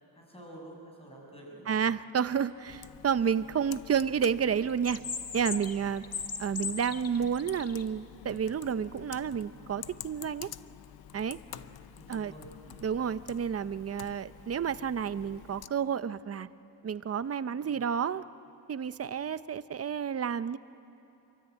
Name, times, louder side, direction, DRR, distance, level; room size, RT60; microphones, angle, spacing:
voice 1, 0.1-1.9 5.3-5.4 5.8-6.0 11.5-12.9 17.6-17.8, right 1 dB, 15° left, -1 dB, 6.2 m, -50 dB
voice 2, 1.7-5.0 5.3-6.0 6.4-10.5 11.1-11.4 12.1-12.3 12.8-16.5 16.8-18.2 18.7-20.6, right 7 dB, 35° right, 14 dB, 0.6 m, -30 dB
Computer keyboard, 2.7-15.7, left 11 dB, 60° left, 0.7 m, -49 dB
sound 1, 4.7-7.8, left 6 dB, 35° left, 1.3 m, -37 dB
27.5 x 24.0 x 9.1 m, 3.0 s
wide cardioid pair, 145°, 41 cm